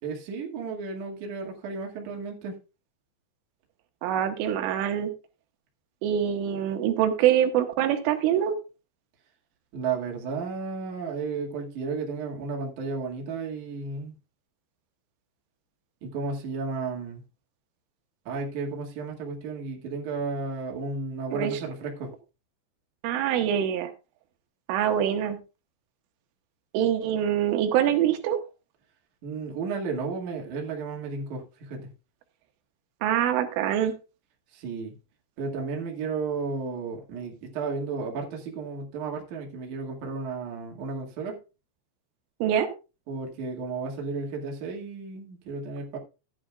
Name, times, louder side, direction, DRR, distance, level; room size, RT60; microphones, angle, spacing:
voice 1, 0.0-2.6 9.7-14.1 16.0-17.2 18.2-22.1 29.2-31.9 34.5-34.9 35.4-41.4 43.1-46.0, right 4 dB, 50° right, 2.9 m, -33 dB
voice 2, 4.0-5.1 6.0-8.6 21.3-21.5 23.0-23.9 24.7-25.4 26.7-28.4 33.0-33.9 42.4-42.7, right 10 dB, 85° right, 3.6 m, -24 dB
14.5 x 10.0 x 2.4 m
omnidirectional pair, 5.6 m